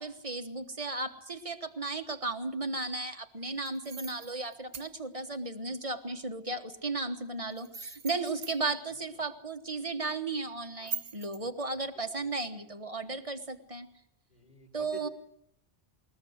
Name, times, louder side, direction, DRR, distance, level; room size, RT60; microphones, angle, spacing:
voice 1, 0.0-13.9 14.7-15.1, right 3 dB, 30° right, 7 dB, 1.3 m, -35 dB
sound 1, 3.6-4.9 7.5-8.6 10.8-11.4, right 6 dB, 80° right, 1.4 m, -41 dB
voice 2, 11.4-11.8 12.2-12.6 14.3-15.1, left 2 dB, 40° left, 3 dB, 4.6 m, -51 dB
20.5 x 20.0 x 8.0 m, 0.76 s
omnidirectional pair, 1.1 m